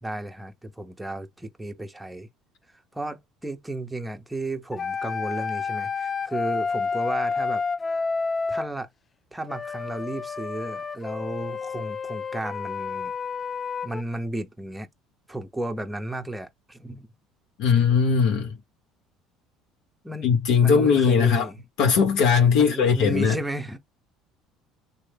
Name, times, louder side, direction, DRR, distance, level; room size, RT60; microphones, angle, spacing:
voice 1, 0.0-2.3 2.9-7.6 7.9-8.0 8.5-8.9 9.3-13.1 13.8-14.9 15.3-17.1 17.7-17.9 20.0-20.3 20.6-21.6 22.5-23.8, right 1 dB, 5° right, 0.7 m, -34 dB
sound 1, 4.7-8.7 9.5-14.0, left 5 dB, 25° left, 0.3 m, -30 dB
voice 2, 17.6-18.5 20.2-21.5 21.8-23.4, left 6 dB, 75° left, 0.8 m, -19 dB
3.2 x 2.1 x 3.3 m
supercardioid pair, 105°, 0 cm